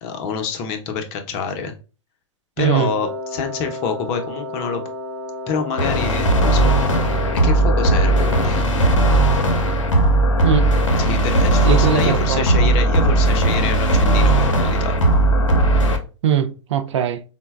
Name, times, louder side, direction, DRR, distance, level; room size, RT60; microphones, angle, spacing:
voice 1, 0.0-1.7 2.6-4.8 5.5-7.0 7.3-9.0 11.0-15.0, left 6 dB, 40° left, 0.6 m, -27 dB
voice 2, 2.6-2.9 10.4-10.7 11.7-12.7 16.2-17.2, right 8 dB, 65° right, 0.4 m, -21 dB
Wind instrument woodwind instrument, 3.0-8.7, left 1 dB, 15° right, 0.9 m, -32 dB
sound 1, 5.8-16.0, right 2 dB, 85° left, 0.5 m, -17 dB
3.9 x 2.1 x 2.2 m
hypercardioid pair, 105°, 16 cm